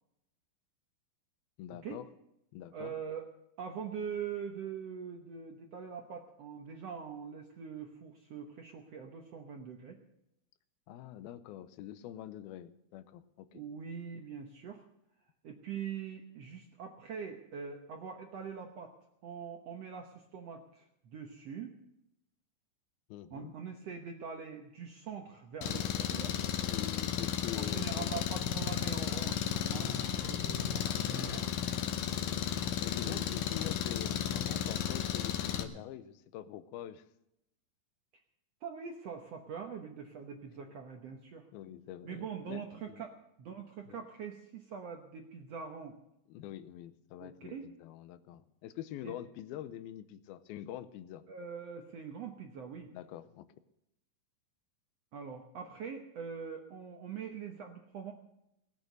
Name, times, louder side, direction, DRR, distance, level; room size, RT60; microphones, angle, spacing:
voice 1, 1.6-2.1 2.5-2.9 10.9-13.6 23.1-23.5 26.7-28.6 30.4-30.8 32.8-37.0 41.5-43.0 43.9-44.0 46.3-51.2 52.9-53.5, left 12 dB, 85° left, 14 dB, 2.6 m, -45 dB
voice 2, 2.7-3.3 3.6-10.0 13.5-14.8 15.4-18.9 19.2-21.7 23.3-26.3 27.5-31.4 33.0-33.2 38.6-41.5 42.0-46.0 47.2-47.7 49.0-49.1 51.3-52.9 55.1-58.1, right 6 dB, 65° right, 3 dB, 1.6 m, -43 dB
Engine, 25.6-35.6, left 9 dB, 65° left, 1.9 m, -34 dB
18.5 x 8.9 x 6.7 m, 0.82 s
omnidirectional pair, 4.3 m